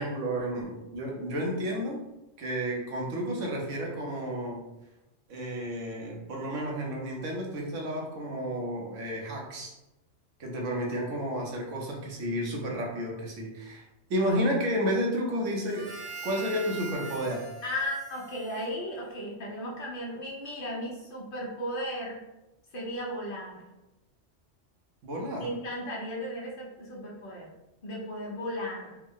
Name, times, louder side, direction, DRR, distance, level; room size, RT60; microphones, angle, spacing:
voice 1, 0.0-2.0 2.4-4.6 5.3-9.8 10.4-13.8 14.1-15.9 16.2-17.5 25.0-25.5, equal, 80° right, -1 dB, 1.1 m, -31 dB
Harmonica, 15.6-19.4, right 3 dB, 35° right, 0.5 m, -43 dB
voice 2, 17.6-22.2 22.7-23.6 25.4-27.5 27.8-29.0, equal, 50° left, -3 dB, 1.0 m, -35 dB
3.5 x 2.1 x 3.6 m, 0.96 s
omnidirectional pair, 1.3 m